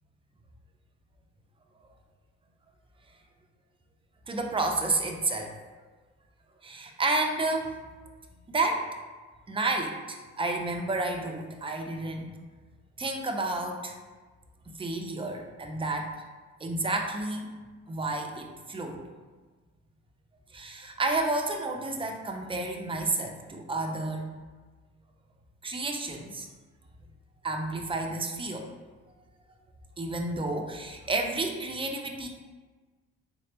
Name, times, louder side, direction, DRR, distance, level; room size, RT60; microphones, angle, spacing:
voice 1, 4.3-5.5 6.6-7.8 8.5-8.8 9.5-12.3 13.0-13.9 14.7-16.1 16.6-17.5 17.9-19.0 20.5-24.3 25.6-26.5 27.4-28.7 30.0-32.3, right 2 dB, 15° right, 2 dB, 0.5 m, -30 dB
3.7 x 3.2 x 2.9 m, 1.3 s
cardioid pair, 90°, 30 cm